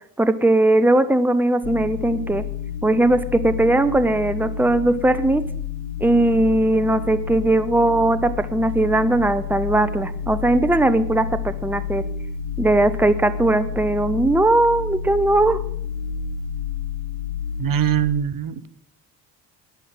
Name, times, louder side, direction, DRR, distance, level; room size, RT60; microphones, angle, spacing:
voice 1, 0.2-2.4 2.8-5.4 6.0-12.0 12.6-15.6, right 2 dB, 5° right, 13 dB, 1.1 m, -19 dB
sound 1, 1.6-18.1, left 6 dB, 60° left, 1.7 m, -30 dB
voice 2, 17.6-18.7, right 10 dB, 45° right, 16 dB, 1.2 m, -22 dB
11.5 x 9.9 x 7.5 m, 0.65 s
hypercardioid pair, 55°, 48 cm